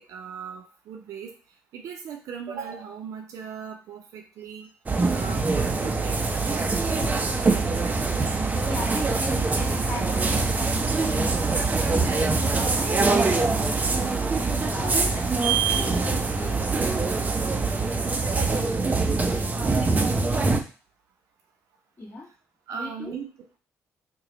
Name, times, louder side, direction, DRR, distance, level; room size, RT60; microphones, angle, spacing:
voice 1, 0.0-1.3 1.7-4.7 5.1-7.1 12.5-12.6 16.1-16.2 18.3-18.7 22.7-23.3, right 6 dB, 75° right, 2 dB, 0.6 m, -38 dB
sound 1, 4.9-20.6, right 3 dB, 30° right, 0.5 m, -24 dB
voice 2, 7.0-7.4 8.4-16.9 22.0-22.3 22.7-23.2, left 2 dB, 30° left, -9 dB, 1.4 m, -38 dB
3.0 x 2.2 x 3.9 m, 0.37 s
supercardioid pair, 60°, 6 cm